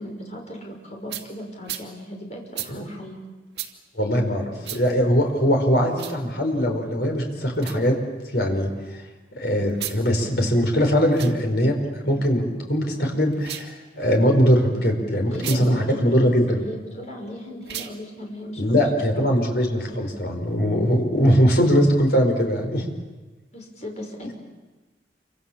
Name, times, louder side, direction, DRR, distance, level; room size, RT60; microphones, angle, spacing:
voice 1, 0.0-3.2 15.3-18.9 23.5-24.3, equal, 40° left, 1 dB, 5.8 m, -37 dB
sound 1, 1.1-1.3 1.6-1.9 2.5-2.7 3.5-3.7 4.6-4.8 5.9-6.2 7.5-7.8 9.7-10.0 11.0-11.3 13.3-13.7 15.3-15.6 17.6-17.9, right 11 dB, 65° right, 2.3 m, -34 dB
voice 2, 4.0-8.0 8.3-9.0 9.4-11.8 12.0-16.6 18.6-22.9 24.2-24.3, equal, 60° left, 3 dB, 5.1 m, -21 dB
28.5 x 25.5 x 7.3 m, 1.2 s
head